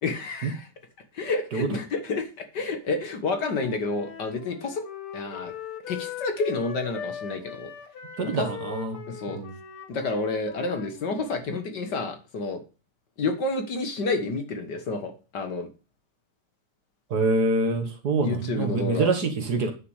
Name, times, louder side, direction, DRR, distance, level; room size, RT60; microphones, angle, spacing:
voice 1, 0.0-0.7 1.1-4.8 5.1-5.5 5.9-7.7 8.3-8.5 9.1-9.4 9.9-12.6 13.2-15.7 18.2-19.1, left 3 dB, 55° left, 7 dB, 1.9 m, -29 dB
Wind instrument woodwind instrument, 3.3-11.4, left 8 dB, 75° left, 2.4 m, -40 dB
voice 2, 8.2-9.0 9.3-9.5 17.1-19.7, right 3 dB, 50° right, 6 dB, 1.8 m, -25 dB
9.6 x 6.7 x 6.5 m, 0.33 s
omnidirectional pair, 2.4 m